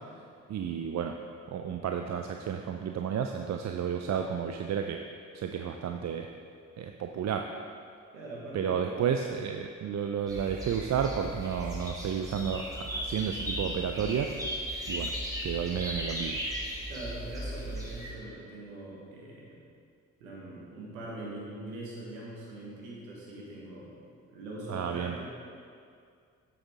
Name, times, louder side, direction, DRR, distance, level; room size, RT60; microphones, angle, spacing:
voice 1, 0.5-1.1 1.5-5.0 5.3-6.3 6.8-7.4 8.5-14.3 14.9-15.1 15.4-16.4 24.7-25.1, right 8 dB, 45° right, 4 dB, 0.5 m, -32 dB
voice 2, 8.1-9.0 16.9-19.6 20.2-23.9 24.3-25.2, right 2 dB, 90° right, -4 dB, 1.5 m, -42 dB
sound 1, 10.3-18.1, equal, 10° right, 2.2 m, -36 dB
7.8 x 7.6 x 3.7 m, 2.3 s
hypercardioid pair, 40°, 40 cm